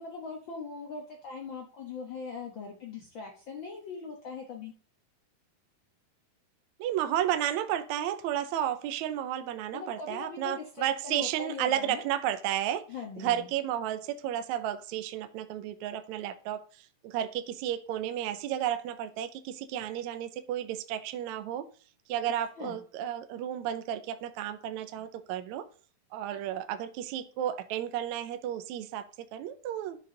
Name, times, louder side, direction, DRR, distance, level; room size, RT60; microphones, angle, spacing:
voice 1, 0.0-4.7 9.7-12.0 12.9-13.5 22.6-22.8 26.3-26.4, left 5 dB, 80° left, 1.0 m, -41 dB
voice 2, 6.8-12.9 13.2-21.7 22.1-25.7 26.1-30.0, right 11 dB, 80° right, 1.7 m, -32 dB
12.0 x 5.1 x 3.9 m
omnidirectional pair, 4.0 m